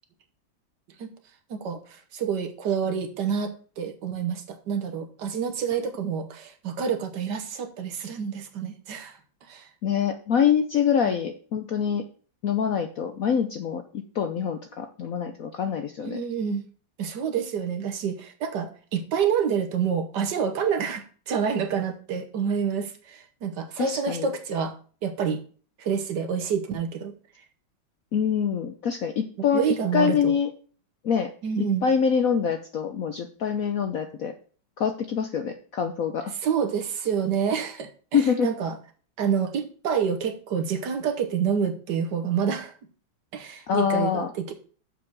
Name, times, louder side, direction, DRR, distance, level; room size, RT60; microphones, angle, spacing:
voice 1, 1.5-9.2 9.5-9.7 11.0-11.1 16.0-16.6 17.0-24.7 25.0-25.4 25.8-27.1 29.5-30.3 31.4-31.9 36.4-38.8 39.2-42.7 43.3-44.5, right 7 dB, 65° right, 6 dB, 1.5 m, -28 dB
voice 2, 9.8-12.0 12.4-16.2 23.8-24.3 28.1-29.6 29.9-30.5 31.0-31.3 31.6-34.3 34.8-36.3 38.1-38.5 43.7-44.3, left 7 dB, 65° left, 6 dB, 0.8 m, -25 dB
7.0 x 5.1 x 5.9 m, 0.41 s
omnidirectional pair, 2.1 m